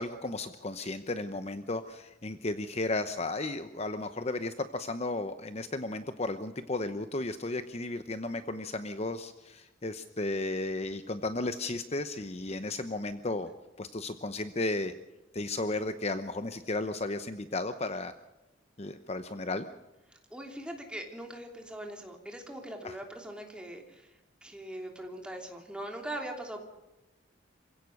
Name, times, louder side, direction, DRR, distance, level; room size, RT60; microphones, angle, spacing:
voice 1, 0.0-13.5 13.8-14.9 15.3-18.1 18.8-19.7 22.8-23.0, left 2 dB, 35° left, 10 dB, 0.9 m, -34 dB
voice 2, 20.1-26.6, right 1 dB, 5° right, 2 dB, 3.2 m, -41 dB
27.0 x 16.5 x 6.5 m, 1.0 s
head